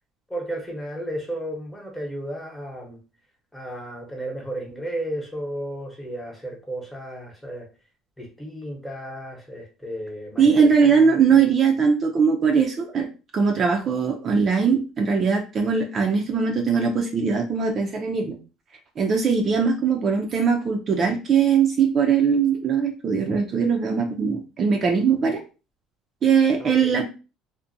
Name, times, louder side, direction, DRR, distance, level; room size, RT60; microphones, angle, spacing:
voice 1, 0.3-3.0 3.5-7.7 8.2-11.5 19.6-19.7 26.6-27.0, right 1 dB, 10° left, -1 dB, 0.9 m, -34 dB
voice 2, 10.4-13.1 13.3-18.4 19.0-25.4 26.2-27.0, right 6 dB, 40° right, 3 dB, 0.5 m, -20 dB
2.5 x 2.1 x 2.6 m, 0.32 s
supercardioid pair, 105°, 0 cm